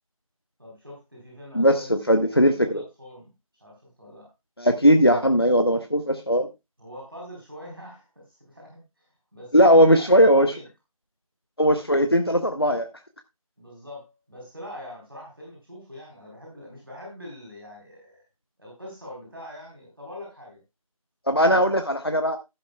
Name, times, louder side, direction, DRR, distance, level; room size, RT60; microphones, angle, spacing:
voice 1, 0.6-3.3 3.6-4.3 6.8-10.7 13.6-18.2 18.6-20.6, left 1 dB, 40° right, -2 dB, 3.8 m, -43 dB
voice 2, 1.5-2.8 4.6-6.5 9.5-10.5 11.6-12.9 21.3-22.4, equal, 40° left, 7 dB, 0.7 m, -19 dB
11.5 x 11.0 x 2.2 m, 0.23 s
figure-of-eight pair, 175°, 19 cm